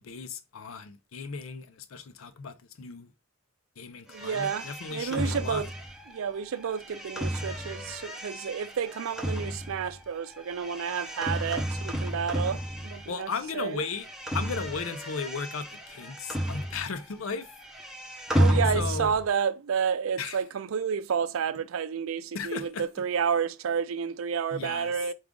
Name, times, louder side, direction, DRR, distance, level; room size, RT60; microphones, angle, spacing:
voice 1, 0.0-3.1 3.8-5.7 13.1-14.1 14.3-17.5 18.7-19.1 20.2-20.4 22.3-22.8 24.5-24.9, left 5 dB, 80° left, 0.5 m, -36 dB
sound 1, 4.1-13.4 13.7-17.1 17.4-19.3, equal, ahead, 0.6 m, -32 dB
voice 2, 4.1-5.7 6.1-13.8 18.4-25.1, right 7 dB, 75° right, 0.4 m, -30 dB
4.8 x 2.4 x 3.6 m
head